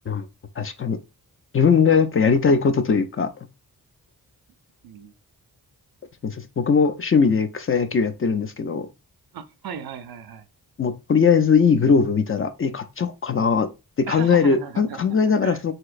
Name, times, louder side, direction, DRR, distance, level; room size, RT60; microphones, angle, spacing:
voice 1, 0.6-1.0 1.5-3.3 6.2-8.9 10.8-13.7 14.0-15.7, left 5 dB, 35° left, 0.4 m, -20 dB
voice 2, 9.3-10.5 14.1-15.6, right 8 dB, 70° right, 0.5 m, -37 dB
3.1 x 2.9 x 2.4 m
cardioid pair, 55°, 38 cm